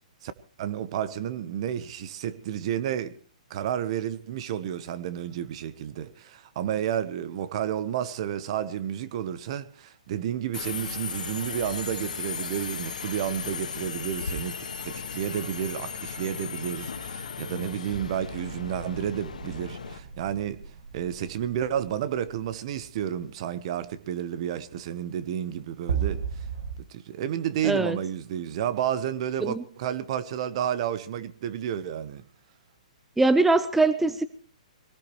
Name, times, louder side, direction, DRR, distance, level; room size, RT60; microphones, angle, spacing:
voice 1, 0.6-3.2 3.5-20.6 20.9-26.2 26.9-32.2, right 10 dB, 50° right, 1.1 m, -31 dB
Subway metro underground, 10.5-20.0, left 5 dB, 80° left, 1.6 m, -36 dB
sound 1, 17.9-23.4 25.9-26.7, right 7 dB, 70° right, 1.9 m, -36 dB
voice 2, 27.6-28.0 29.4-29.6 33.2-34.2, right 2 dB, 5° right, 0.6 m, -22 dB
22.0 x 18.0 x 3.2 m
hypercardioid pair, 135°, 4 cm